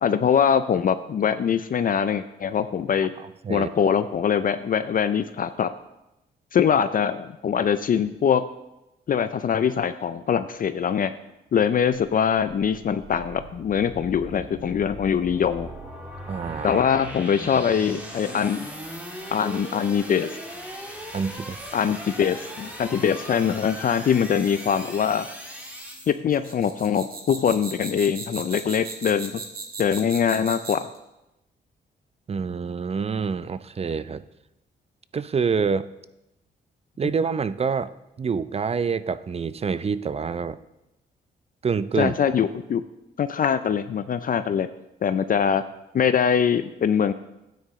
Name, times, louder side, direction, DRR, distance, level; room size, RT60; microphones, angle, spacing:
voice 1, 0.0-3.1 3.5-5.7 6.5-8.4 9.1-11.1 11.5-15.7 16.6-18.7 19.3-20.4 21.7-25.3 26.1-29.3 29.8-30.9 42.0-42.8 43.2-44.7 45.0-45.6 45.9-47.1, left 7 dB, 50° left, 12 dB, 0.5 m, -23 dB
sound 1, 12.0-26.1, equal, 10° right, 2.4 m, -39 dB
voice 2, 16.3-16.8 21.1-21.7 32.3-34.2 35.1-35.9 37.0-37.9 38.2-40.6 41.6-42.2, right 5 dB, 35° right, 15 dB, 0.5 m, -26 dB
sound 2, 26.3-31.0, right 3 dB, 55° right, 1.9 m, -37 dB
12.5 x 9.2 x 3.1 m, 0.92 s
cardioid pair, 75°, 18 cm